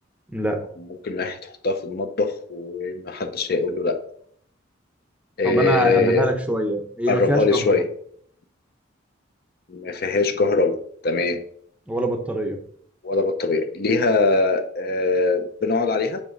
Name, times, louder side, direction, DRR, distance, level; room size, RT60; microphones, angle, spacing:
voice 1, 0.3-0.6 5.4-7.8 11.9-12.6, right 1 dB, 5° right, 5 dB, 0.6 m, -24 dB
voice 2, 1.0-4.0 5.4-6.2 7.1-7.8 9.7-10.7 11.0-11.4 13.0-16.2, left 3 dB, 50° left, 7 dB, 0.5 m, -22 dB
7.2 x 3.0 x 5.1 m, 0.64 s
head